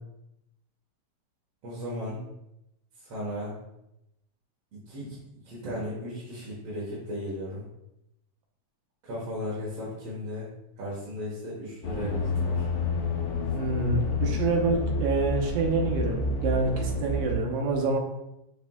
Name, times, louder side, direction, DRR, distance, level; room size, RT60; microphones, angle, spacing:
voice 1, 1.6-2.3 3.0-3.6 4.9-5.2 5.4-7.7 9.0-10.5 10.8-12.7, left 1 dB, 60° right, -7 dB, 2.4 m, -35 dB
sound 1, 11.8-17.4, left 2 dB, 85° left, 2.3 m, -29 dB
voice 2, 13.5-18.0, right 3 dB, 85° right, 1 dB, 2.5 m, -27 dB
6.7 x 6.1 x 2.4 m, 0.85 s
omnidirectional pair, 3.3 m